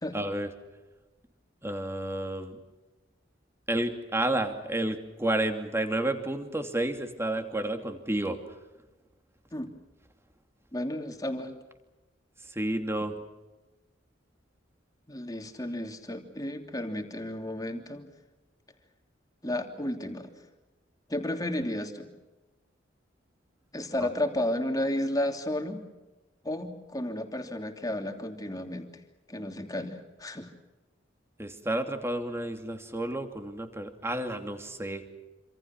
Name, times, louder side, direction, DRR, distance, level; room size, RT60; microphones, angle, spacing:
voice 1, 0.1-0.5 1.6-2.6 3.7-8.4 12.5-13.1 24.0-24.1 31.4-35.0, right 1 dB, 15° right, 6 dB, 2.8 m, -31 dB
voice 2, 10.7-11.6 15.1-18.1 19.4-20.3 21.1-22.1 23.7-25.8 26.4-28.9 29.3-30.5, left 1 dB, 20° left, 4 dB, 3.0 m, -32 dB
27.0 x 27.0 x 6.1 m, 1.1 s
head